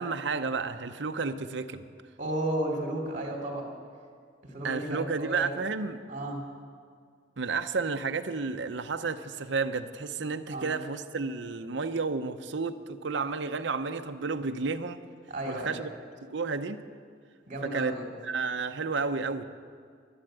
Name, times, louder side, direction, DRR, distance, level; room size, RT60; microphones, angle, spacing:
voice 1, 0.0-1.9 4.6-6.0 7.4-15.0 15.5-15.9 16.3-16.8 17.6-18.0 18.2-19.4, right 4 dB, 65° right, 8 dB, 0.7 m, -31 dB
voice 2, 2.2-3.7 4.4-5.5 6.1-6.4 10.5-10.7 15.3-15.8 17.5-18.1, right 1 dB, 40° right, 0 dB, 2.9 m, -33 dB
12.0 x 11.5 x 8.8 m, 2.1 s
head